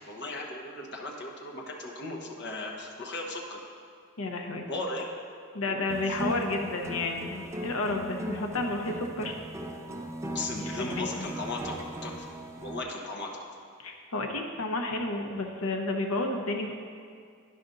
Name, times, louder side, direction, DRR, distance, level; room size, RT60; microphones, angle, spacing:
voice 1, 0.0-3.6 4.7-5.1 5.6-5.8 10.3-11.7 12.0-12.1 12.6-13.4, left 2 dB, 55° left, -1 dB, 1.1 m, -36 dB
voice 2, 4.2-4.6 5.5-9.3 10.6-11.3 13.8-16.7, left 2 dB, 75° left, 3 dB, 0.8 m, -31 dB
sound 1, 5.9-12.8, right 1 dB, 15° right, 0.4 m, -38 dB
11.0 x 5.1 x 3.9 m, 2.2 s
head